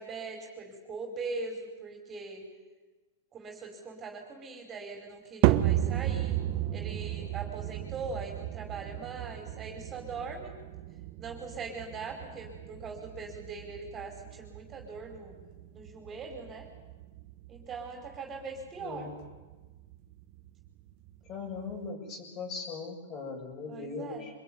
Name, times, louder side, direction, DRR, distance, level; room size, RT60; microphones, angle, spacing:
voice 1, 0.0-2.4 3.3-6.4 6.7-10.5 11.2-15.4 15.7-16.7 17.5-19.1 23.7-24.3, right 4 dB, 25° right, 4 dB, 5.1 m, -41 dB
sound 1, 5.4-21.9, right 14 dB, 45° right, 1.1 m, -34 dB
voice 2, 18.8-19.1 21.3-24.3, left 4 dB, 35° left, 3 dB, 7.5 m, -39 dB
25.0 x 21.5 x 9.7 m, 1.2 s
hypercardioid pair, 130°, 0 cm